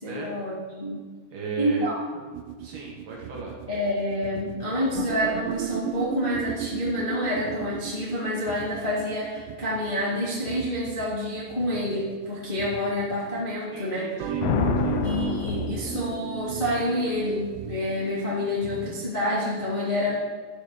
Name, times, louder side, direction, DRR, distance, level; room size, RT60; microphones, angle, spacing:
voice 1, 0.0-1.0 1.6-2.0 3.7-14.1 15.0-20.2, left 1 dB, 35° left, -8 dB, 0.8 m, -28 dB
voice 2, 1.3-1.9 2.6-3.6 13.7-15.1, right 4 dB, 65° right, -3 dB, 2.4 m, -37 dB
sound 1, 2.3-13.5 14.2-19.1, right 10 dB, 80° right, 2.6 m, -35 dB
Thunder, 14.4-16.6, left 9 dB, 85° left, 2.9 m, -28 dB
12.0 x 4.4 x 6.8 m, 1.5 s
omnidirectional pair, 5.1 m